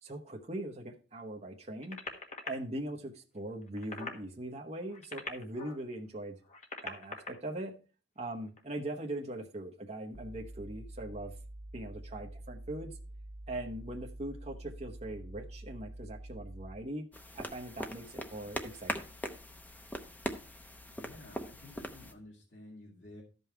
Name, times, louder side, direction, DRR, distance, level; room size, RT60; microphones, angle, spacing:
voice 1, 0.0-2.0 2.4-6.3 6.8-7.7 8.2-11.3 11.7-12.9 13.5-17.0 17.3-19.0, right 1 dB, 35° right, 1 dB, 1.0 m, -41 dB
sound 1, 1.8-2.5 3.6-4.2 4.9-5.8 6.4-7.3 8.5-8.6, left 3 dB, 40° left, 1.5 m, -42 dB
sound 2, 10.1-16.9, right 1 dB, 80° right, 0.9 m, -47 dB
sound 3, 17.1-22.1, left 1 dB, 10° left, 0.8 m, -41 dB
voice 2, 20.8-23.2, left 1 dB, 80° left, -4 dB, 2.3 m, -52 dB
13.0 x 5.5 x 4.6 m, 0.35 s
head